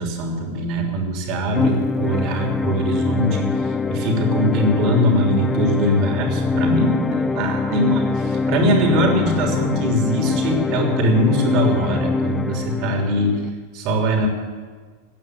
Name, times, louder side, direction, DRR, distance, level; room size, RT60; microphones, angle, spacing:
voice 1, 0.0-3.5 3.9-13.4 13.7-14.3, equal, 40° right, 2 dB, 3.2 m, -21 dB
sound 1, 1.5-13.5, left 3 dB, 15° left, 0.8 m, -23 dB
15.5 x 9.4 x 9.2 m, 1.5 s
figure-of-eight pair, 90°, 0 cm